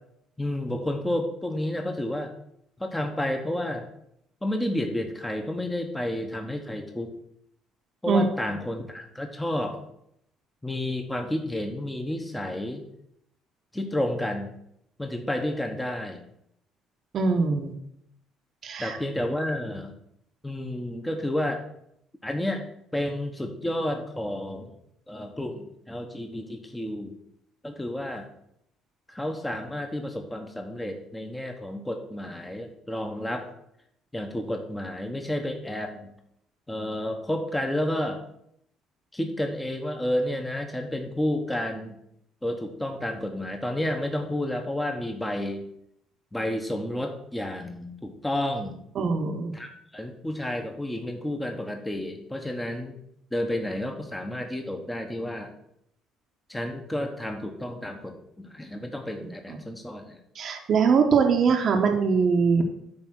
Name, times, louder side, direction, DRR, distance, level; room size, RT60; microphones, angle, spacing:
voice 1, 0.4-2.3 2.8-3.8 4.4-7.1 8.0-9.8 10.6-12.8 13.7-14.5 15.0-16.2 18.8-19.9 20.4-21.6 22.2-22.6 22.9-24.7 25.1-27.1 27.6-28.3 29.1-33.5 34.1-36.1 36.7-38.2 39.1-42.0 42.4-45.6 46.3-48.8 49.5-52.9 53.3-55.5 56.5-60.2, left 1 dB, 10° left, 4 dB, 1.0 m, -31 dB
voice 2, 17.1-17.7 18.6-19.0 49.0-49.5 59.5-59.6 60.3-62.7, right 5 dB, 50° right, 4 dB, 1.0 m, -22 dB
8.7 x 3.4 x 6.2 m, 0.73 s
cardioid pair, 95°, 0 cm